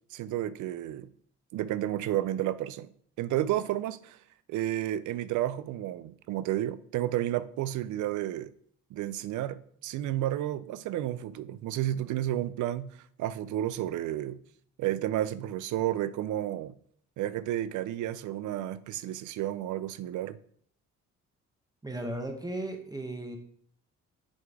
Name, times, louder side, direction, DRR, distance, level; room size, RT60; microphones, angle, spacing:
voice 1, 0.1-1.1 1.5-2.9 3.2-4.2 4.5-8.5 8.9-14.4 14.8-16.7 17.2-20.4, right 13 dB, 75° right, 0.4 m, -31 dB
voice 2, 21.8-23.4, right 1 dB, 15° right, 0.8 m, -36 dB
6.3 x 3.8 x 4.6 m
cardioid pair, 90°, 30 cm